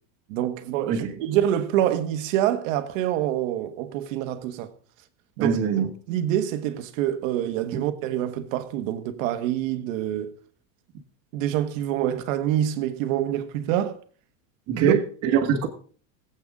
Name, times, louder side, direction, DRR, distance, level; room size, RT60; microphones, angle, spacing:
voice 1, 0.3-4.7 5.4-5.6 6.1-10.3 11.3-14.0 14.7-15.0, right 11 dB, 60° right, 1.4 m, -26 dB
voice 2, 5.4-5.9 7.7-7.8 14.7-15.7, right 7 dB, 35° right, 1.7 m, -23 dB
19.5 x 8.2 x 3.7 m
supercardioid pair, 165°, 43 cm